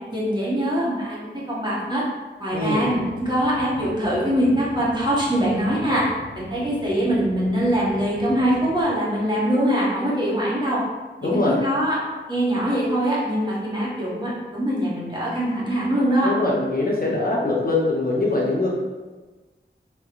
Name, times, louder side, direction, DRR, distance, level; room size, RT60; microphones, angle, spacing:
voice 1, 0.1-2.0 2.4-6.0 6.3-10.8 11.2-12.0 12.3-16.3, equal, 20° right, -7 dB, 1.0 m, -23 dB
voice 2, 2.5-2.9 11.2-11.6 16.2-18.7, left 2 dB, 45° left, -4 dB, 0.6 m, -22 dB
sound 1, 2.5-8.8, right 1 dB, 25° left, 1.0 m, -42 dB
3.4 x 2.9 x 2.4 m, 1.3 s
wide cardioid pair, 55°, 20 cm